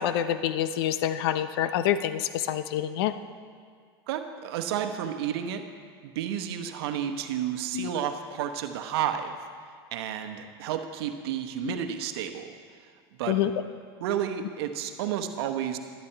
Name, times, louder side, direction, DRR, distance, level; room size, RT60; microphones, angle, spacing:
voice 1, 0.0-3.1 7.7-7.9 11.6-11.7 13.3-13.5, left 11 dB, 70° left, 12 dB, 0.7 m, -27 dB
voice 2, 4.1-5.6 6.0-9.3 9.9-12.6 13.1-13.4 14.0-15.8, right 9 dB, 70° right, 7 dB, 1.0 m, -31 dB
12.0 x 11.5 x 4.6 m, 2.1 s
hypercardioid pair, 95°, 13 cm